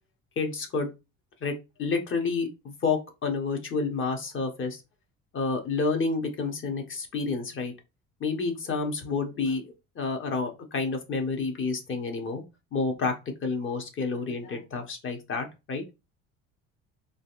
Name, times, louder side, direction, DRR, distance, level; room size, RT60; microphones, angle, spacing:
voice 1, 0.4-0.9 1.4-1.5 1.8-4.8 5.3-7.7 8.2-12.4 12.7-13.1 13.4-15.8, left 4 dB, 40° left, 4 dB, 1.1 m, -29 dB
3.9 x 2.4 x 2.5 m, 0.26 s
hypercardioid pair, 75°, 32 cm